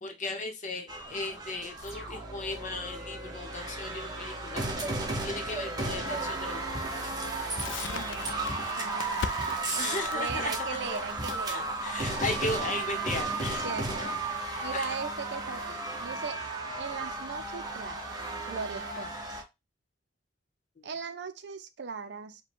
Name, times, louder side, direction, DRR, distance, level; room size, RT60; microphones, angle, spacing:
voice 1, 0.0-4.7 5.2-6.8 9.8-10.8 11.5-13.6 14.7-15.0 20.8-21.0, left 2 dB, 40° left, 0.9 m, -36 dB
sound 1, 0.9-19.4, right 2 dB, 20° right, 1.0 m, -34 dB
sound 2, 1.8-9.3, equal, 5° right, 1.8 m, -45 dB
Crackle, 7.6-14.4, left 6 dB, 75° left, 0.4 m, -41 dB
voice 2, 7.9-8.3 8.8-11.7 13.6-14.1 14.6-16.4 16.7-18.0 18.5-19.4 20.8-22.4, right 5 dB, 65° right, 0.5 m, -39 dB
5.0 x 2.2 x 3.5 m
head